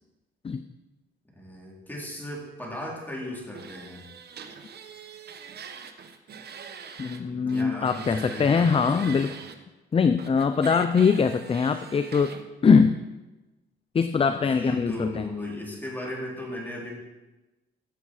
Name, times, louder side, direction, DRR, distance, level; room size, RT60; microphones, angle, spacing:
voice 1, 1.3-4.0 7.3-9.3 14.3-16.9, left 1 dB, 10° left, -4 dB, 4.4 m, -37 dB
sound 1, 3.5-7.2 7.5-9.6 10.2-12.4, right 6 dB, 55° right, 1.1 m, -43 dB
voice 2, 7.0-9.3 9.9-12.4 12.6-12.9 13.9-15.2, left 5 dB, 30° left, 10 dB, 0.5 m, -22 dB
15.0 x 7.2 x 4.9 m, 1.1 s
cardioid pair, 90°, 20 cm